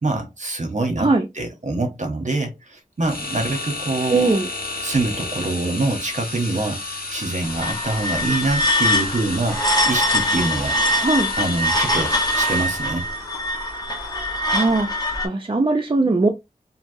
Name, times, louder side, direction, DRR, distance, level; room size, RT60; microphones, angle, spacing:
voice 1, 0.0-1.1 1.3-4.4 4.8-6.8 7.1-10.8 11.4-13.1, right 2 dB, 55° right, 1.0 m, -25 dB
sound 1, 3.0-13.1, left 2 dB, 85° left, 1.4 m, -32 dB
voice 2, 4.1-4.5 11.0-11.3 14.5-16.3, right 3 dB, 35° right, 0.5 m, -20 dB
sound 2, 7.4-15.3, left 1 dB, 25° left, 1.1 m, -23 dB
3.3 x 2.6 x 2.6 m
wide cardioid pair, 65°, 15 cm